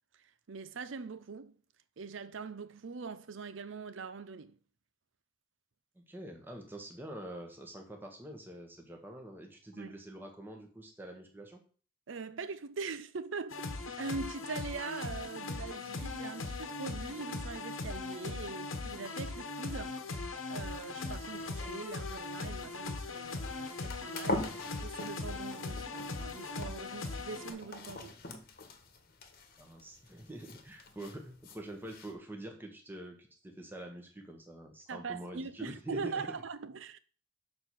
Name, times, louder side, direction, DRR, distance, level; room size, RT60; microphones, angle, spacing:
voice 1, 0.2-1.6 2.0-4.6 9.7-9.9 12.1-24.5 24.8-28.1 34.9-37.0, right 4 dB, 70° right, 0.6 m, -42 dB
voice 2, 5.9-11.6 29.6-36.2, right 1 dB, 10° right, 1.3 m, -46 dB
sound 1, 13.5-27.5, left 3 dB, 90° left, 1.2 m, -40 dB
sound 2, 20.5-32.1, left 2 dB, 45° left, 1.2 m, -44 dB
6.8 x 4.2 x 6.4 m
head